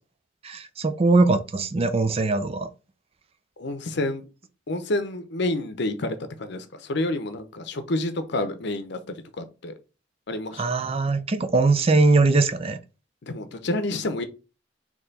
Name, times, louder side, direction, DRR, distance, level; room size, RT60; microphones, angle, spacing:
voice 1, 0.4-2.7 10.6-12.8, right 3 dB, 30° right, 0.4 m, -21 dB
voice 2, 3.6-4.2 4.7-9.7 10.3-10.6 13.2-14.2, left 2 dB, 65° left, 0.7 m, -29 dB
4.4 x 2.9 x 4.0 m
head